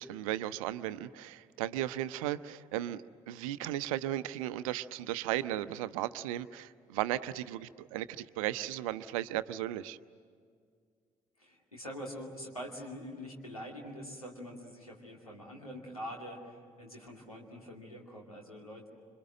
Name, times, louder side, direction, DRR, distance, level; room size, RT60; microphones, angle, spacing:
voice 1, 0.0-10.0, right 13 dB, 70° right, 14 dB, 0.7 m, -36 dB
voice 2, 11.4-18.9, equal, 90° left, -1 dB, 2.6 m, -45 dB
27.5 x 25.5 x 7.8 m, 2.1 s
figure-of-eight pair, 45°, 18 cm